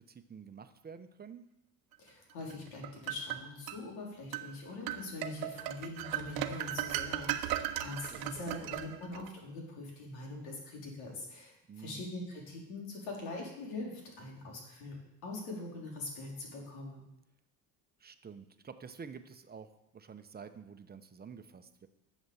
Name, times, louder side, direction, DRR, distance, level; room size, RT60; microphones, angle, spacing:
voice 1, 0.1-1.4 8.1-8.7 11.7-12.0 18.0-21.9, right 6 dB, 25° right, 9 dB, 1.0 m, -49 dB
voice 2, 2.0-15.0 15.2-17.0, left 2 dB, 85° left, -1 dB, 4.2 m, -43 dB
sound 1, 2.5-3.8 4.3-4.5 4.9-9.3, right 13 dB, 70° right, 1.0 m, -37 dB
11.0 x 7.2 x 7.1 m, 0.89 s
cardioid pair, 110°, 37 cm